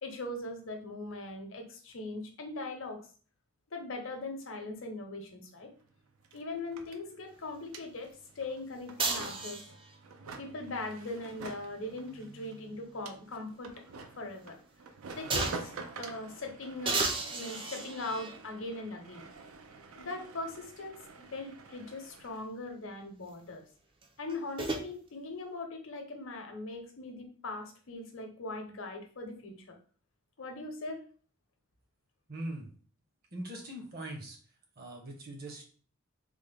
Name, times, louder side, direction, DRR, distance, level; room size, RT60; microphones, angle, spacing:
voice 1, 0.0-3.0 3.7-5.7 6.3-9.6 10.4-13.7 14.2-14.6 15.1-17.0 17.3-19.3 20.0-23.6 24.2-29.8 30.4-31.0, left 2 dB, 70° left, 3 dB, 0.7 m, -40 dB
sound 1, 5.6-5.7 5.8-22.5, right 4 dB, 90° right, 0.4 m, -48 dB
sound 2, 9.0-10.0 11.7-13.3 13.7-13.8 15.3-15.8 16.8-18.4 19.3-19.4 24.0-24.9, right 3 dB, 25° right, 0.4 m, -35 dB
voice 2, 32.3-32.7 33.3-34.4 34.8-35.6, right 1 dB, 45° right, 1 dB, 0.9 m, -41 dB
3.5 x 2.1 x 3.4 m, 0.41 s
head